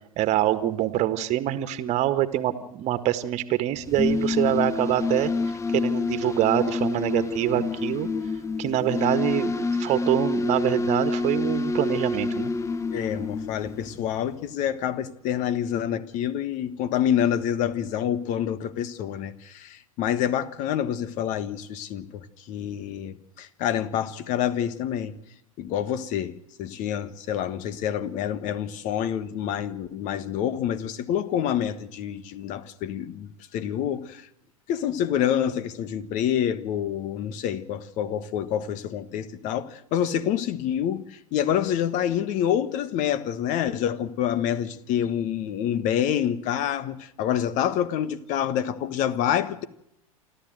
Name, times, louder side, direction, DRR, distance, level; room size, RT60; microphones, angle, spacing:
voice 1, 0.2-5.3 5.7-8.1 8.6-12.5, right 13 dB, 35° right, 1.8 m, -25 dB
sound 1, 3.8-14.2, left 3 dB, 15° left, 0.9 m, -27 dB
voice 2, 12.9-25.1 25.6-34.3 34.7-49.6, left 10 dB, 40° left, 1.5 m, -27 dB
28.0 x 12.5 x 7.9 m
figure-of-eight pair, 90°, 19 cm